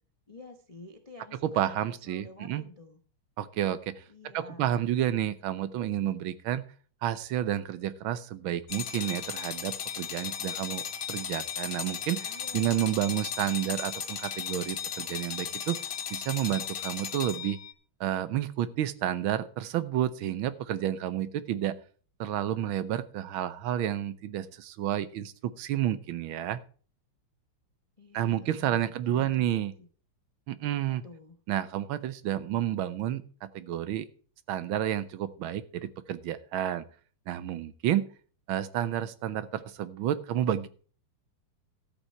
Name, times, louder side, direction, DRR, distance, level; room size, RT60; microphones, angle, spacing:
voice 1, 0.3-3.0 4.1-4.7 12.2-12.9 28.0-29.3 29.8-29.9 30.7-31.4, left 2 dB, 35° left, 6 dB, 0.5 m, -50 dB
voice 2, 1.4-2.6 3.4-4.0 4.3-6.6 7.0-15.8 16.1-17.6 18.0-21.8 22.2-26.6 28.1-29.7 30.5-31.0 31.5-34.1 34.5-36.8 37.3-38.1 38.5-40.7, right 11 dB, 75° right, 15 dB, 1.5 m, -30 dB
sound 1, 8.7-17.7, left 8 dB, 55° left, 1.6 m, -36 dB
13.0 x 8.2 x 4.5 m, 0.42 s
omnidirectional pair, 2.3 m